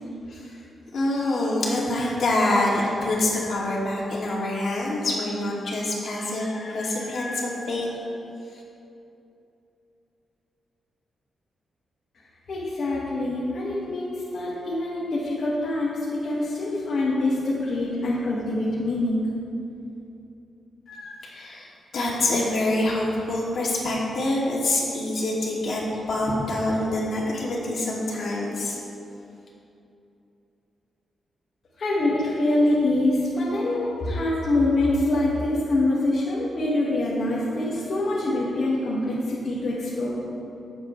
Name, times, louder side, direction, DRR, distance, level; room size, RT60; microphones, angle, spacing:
voice 1, 0.9-7.9 20.9-28.8, left 1 dB, 60° left, -5 dB, 2.6 m, -26 dB
voice 2, 12.5-19.3 31.8-40.2, left 2 dB, 45° left, -8 dB, 1.9 m, -25 dB
18.0 x 7.7 x 3.3 m, 2.8 s
wide cardioid pair, 135°, 0 cm